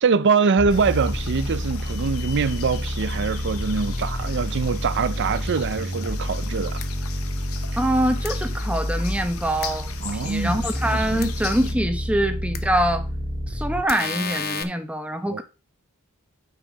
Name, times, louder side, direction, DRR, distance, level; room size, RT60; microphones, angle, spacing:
voice 1, 0.0-6.8 10.0-11.3 15.3-15.4, right 5 dB, 55° right, 0.5 m, -24 dB
sound 1, 0.6-13.8, equal, 10° left, 2.6 m, -29 dB
sound 2, 0.7-11.7, left 7 dB, 70° left, 1.0 m, -39 dB
sound 3, 6.8-6.9 8.3-8.4 9.6-9.7 11.2-11.3 12.5-12.6 13.9-14.6, left 6 dB, 45° left, 0.8 m, -30 dB
voice 2, 7.8-13.1 13.5-15.4, right 1 dB, 5° right, 1.0 m, -24 dB
9.4 x 5.7 x 4.0 m
head